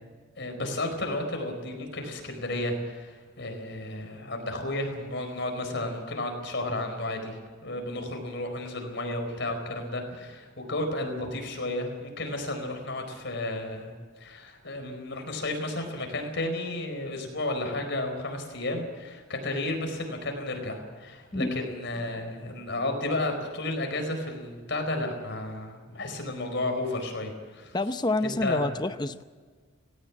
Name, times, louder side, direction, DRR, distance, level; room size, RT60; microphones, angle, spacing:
voice 1, 0.4-27.8 28.2-28.6, left 2 dB, 55° left, 4 dB, 4.6 m, -32 dB
voice 2, 21.3-21.7 27.7-29.2, left 2 dB, 20° left, 11 dB, 0.6 m, -28 dB
18.5 x 17.5 x 8.6 m, 1.5 s
head